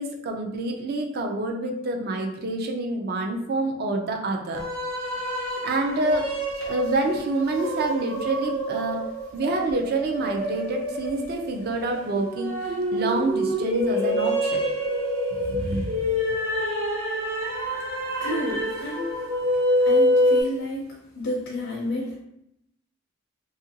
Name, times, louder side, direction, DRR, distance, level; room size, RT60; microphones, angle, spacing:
voice 1, 0.0-4.7 5.6-6.4 6.7-9.0 9.3-12.6 12.9-14.6 15.3-16.0, right 2 dB, 50° right, 3 dB, 0.4 m, -27 dB
sound 1, 4.5-20.4, equal, 75° right, 1.1 m, -26 dB
voice 2, 18.2-19.1 19.8-20.8 21.1-22.2, left 1 dB, 75° left, -3 dB, 0.6 m, -30 dB
2.8 x 2.4 x 2.7 m, 0.80 s
head